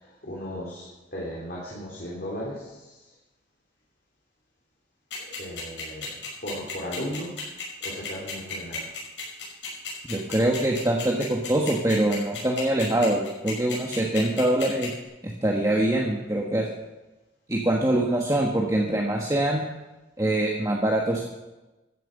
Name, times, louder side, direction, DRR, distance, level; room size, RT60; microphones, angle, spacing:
voice 1, 0.0-3.0 5.2-6.1 6.4-7.3 7.8-8.9, equal, 60° left, -5 dB, 3.3 m, -36 dB
sound 1, 5.1-14.9, left 7 dB, 85° left, 6.4 m, -34 dB
voice 2, 10.1-14.9 15.2-16.6 17.5-19.6 20.2-21.2, right 1 dB, 20° right, -1 dB, 1.4 m, -24 dB
14.0 x 9.2 x 6.7 m, 1.1 s
head